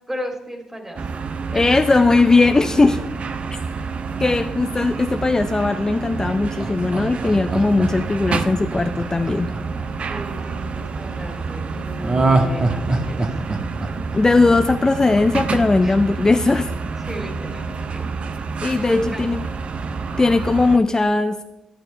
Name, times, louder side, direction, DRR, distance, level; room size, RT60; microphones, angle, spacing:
voice 1, 0.1-1.1 1.5-2.0 10.0-13.4 15.8-16.0 17.0-18.0 18.5-19.3, equal, 15° right, 2 dB, 3.0 m, -33 dB
sound 1, 1.0-20.8, right 4 dB, 55° right, 0.7 m, -28 dB
voice 2, 1.5-3.0 4.2-9.5 14.1-16.7 18.6-19.4 20.2-21.4, left 3 dB, 25° left, 8 dB, 0.5 m, -18 dB
Laughter, 6.2-10.4 12.0-15.0 15.4-15.5, right 2 dB, 40° right, 1.6 m, -24 dB
11.5 x 10.5 x 3.3 m, 0.97 s
supercardioid pair, 55°, 2 cm